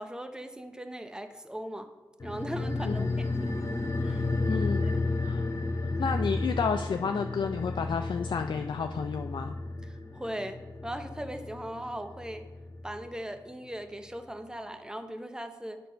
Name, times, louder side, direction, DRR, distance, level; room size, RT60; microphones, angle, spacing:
voice 1, 0.0-1.9 2.2-3.7 4.0-4.2 4.8-4.9 9.9-12.5 12.8-15.8, right 1 dB, 10° right, 8 dB, 0.7 m, -39 dB
sound 1, 2.2-13.1 13.3-13.4, left 3 dB, 40° left, 1.0 m, -32 dB
voice 2, 4.5-4.9 5.2-5.4 6.0-9.6, left 6 dB, 70° left, 6 dB, 0.4 m, -31 dB
9.2 x 4.0 x 5.5 m, 1.3 s
cardioid pair, 60°, 8 cm